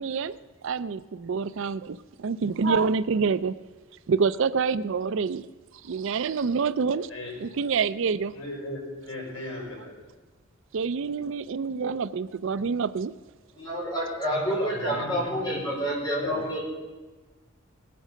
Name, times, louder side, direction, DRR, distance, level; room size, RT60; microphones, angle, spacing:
voice 1, 0.0-3.5 4.1-5.5 5.8-7.1 7.4-8.3 10.7-13.1, right 5 dB, 65° right, 16 dB, 0.4 m, -27 dB
voice 2, 8.3-9.9 14.3-15.4 16.1-16.4, left 1 dB, 70° left, -2 dB, 5.3 m, -36 dB
voice 3, 13.5-16.6, equal, 20° left, -4 dB, 4.8 m, -28 dB
19.0 x 8.6 x 6.5 m, 1.3 s
head